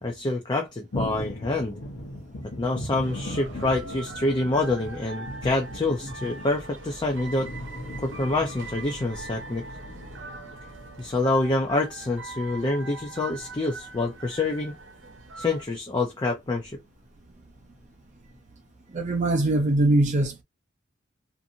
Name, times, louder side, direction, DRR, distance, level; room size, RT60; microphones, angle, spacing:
voice 1, 0.0-1.8 2.6-7.5 8.0-9.6 11.0-14.8 15.4-16.8, left 2 dB, 20° left, 0.4 m, -27 dB
sound 1, 0.9-15.2 15.5-16.0 16.5-17.1 17.4-17.9 18.3-18.4 19.0-19.1, left 1 dB, 75° left, 0.8 m, -40 dB
sound 2, 3.0-15.6, right 3 dB, 65° right, 0.8 m, -42 dB
voice 2, 18.9-20.4, right 2 dB, 35° right, 0.5 m, -22 dB
2.6 x 2.6 x 2.6 m
head